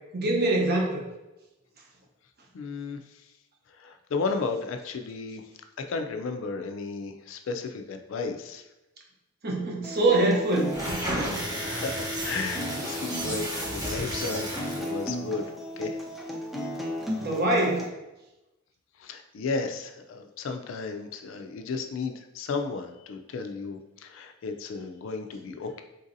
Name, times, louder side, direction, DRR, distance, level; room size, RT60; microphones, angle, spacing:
voice 1, 0.1-1.1 9.4-11.2 17.2-17.9, right 2 dB, 50° right, 0 dB, 0.7 m, -24 dB
voice 2, 2.5-3.0 3.8-5.4 5.8-8.6 11.6-15.5 15.8-16.0 19.0-25.8, left 4 dB, 65° left, 6 dB, 0.4 m, -34 dB
Acoustic guitar, 9.8-17.8, left 1 dB, ahead, 0.4 m, -35 dB
sound 1, 10.6-15.0, right 1 dB, 20° right, 0.9 m, -33 dB
3.9 x 2.6 x 2.6 m, 0.97 s
head